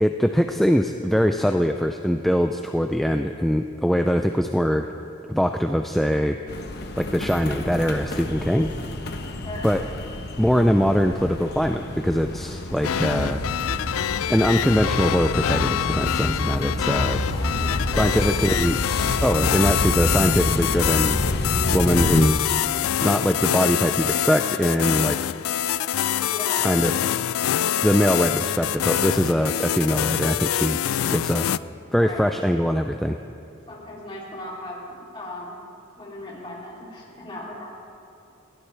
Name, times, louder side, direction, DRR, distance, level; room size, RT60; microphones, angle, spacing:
voice 1, 0.0-4.9 5.3-6.4 7.0-8.7 9.6-9.8 10.4-13.4 14.3-17.2 18.0-18.8 19.2-21.2 21.7-22.6 23.0-25.2 26.6-26.9 27.8-30.8 31.1-31.5 31.9-33.2, equal, ahead, 5 dB, 0.3 m, -22 dB
sound 1, 6.5-22.3, left 1 dB, 50° left, 1.0 m, -28 dB
voice 2, 9.4-9.7 17.4-18.4 26.3-26.7 31.8-32.3 33.7-35.6 36.0-37.7, left 1 dB, 25° left, -5 dB, 3.2 m, -37 dB
sound 2, 12.8-31.6, left 11 dB, 85° left, 0.3 m, -25 dB
21.5 x 16.0 x 3.4 m, 2.6 s
head